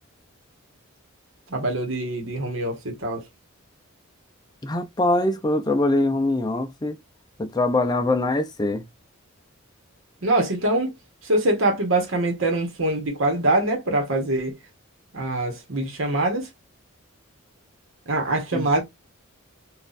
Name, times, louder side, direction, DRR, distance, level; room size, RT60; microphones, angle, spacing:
voice 1, 1.5-3.2 10.2-10.9 11.2-14.6 15.1-16.5 18.1-18.8, right 2 dB, 70° right, 1.2 m, -24 dB
voice 2, 4.6-7.0 7.4-8.8 18.5-18.7, left 2 dB, 20° left, 0.5 m, -23 dB
4.0 x 2.5 x 2.5 m
head